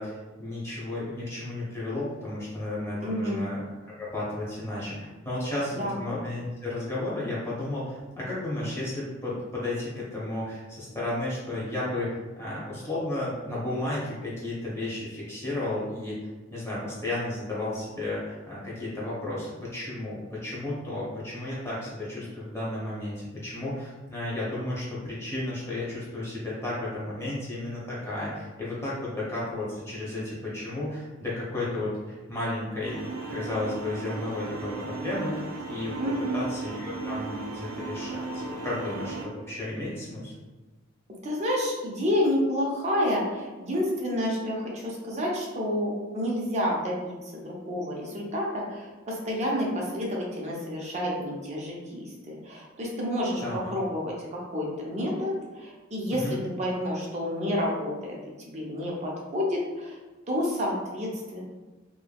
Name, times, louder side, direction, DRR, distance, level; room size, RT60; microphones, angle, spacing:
voice 1, 0.0-3.6 4.0-16.2 16.5-33.0 33.3-36.0 36.3-40.3 53.4-53.7 56.1-56.4, left 2 dB, 15° left, -7 dB, 0.9 m, -33 dB
voice 2, 3.0-3.4 5.7-5.9 36.0-36.4 41.2-60.0 60.3-61.4, equal, 35° right, -3 dB, 0.6 m, -29 dB
sound 1, 32.8-39.3, right 3 dB, 80° right, 0.4 m, -36 dB
3.2 x 2.0 x 2.2 m, 1.2 s
head